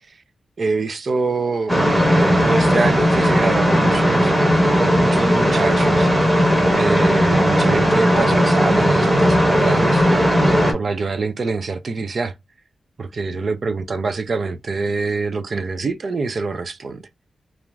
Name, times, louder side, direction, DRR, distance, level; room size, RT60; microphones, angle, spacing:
voice 1, 0.6-1.8 2.1-4.3 5.0-6.1 6.7-10.0 10.5-12.3 13.0-17.0, right 4 dB, 50° right, 0.4 m, -25 dB
sound 1, 1.7-10.7, equal, 5° right, 0.8 m, -16 dB
2.5 x 2.3 x 3.0 m
wide cardioid pair, 125°, 0 cm